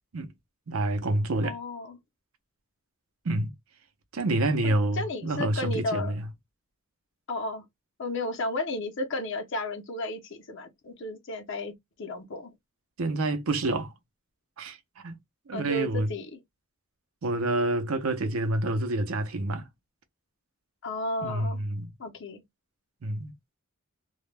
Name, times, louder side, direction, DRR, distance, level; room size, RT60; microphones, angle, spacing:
voice 1, 0.7-1.6 3.2-3.5 4.1-6.3 13.0-13.9 14.6-14.8 15.0-15.2 15.5-16.1 17.2-19.7 21.2-21.9 23.0-23.3, right 2 dB, 80° right, 0.6 m, -28 dB
voice 2, 1.4-2.0 4.6-6.1 7.3-7.6 8.0-11.7 12.0-12.5 15.5-16.4 20.8-21.6 22.0-22.4, left 2 dB, 60° left, 0.6 m, -33 dB
2.2 x 2.1 x 3.1 m
head